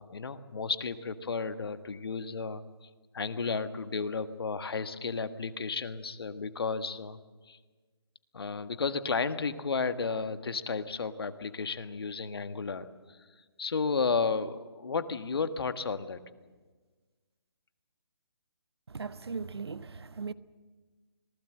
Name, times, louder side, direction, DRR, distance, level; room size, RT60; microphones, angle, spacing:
voice 1, 0.0-2.6 3.1-7.2 7.5-7.6 8.3-13.2 13.6-16.2, left 4 dB, 65° left, 1.5 m, -33 dB
voice 2, 18.9-20.3, right 4 dB, 75° right, 1.0 m, -38 dB
25.5 x 19.5 x 7.7 m
figure-of-eight pair, 145°, 14 cm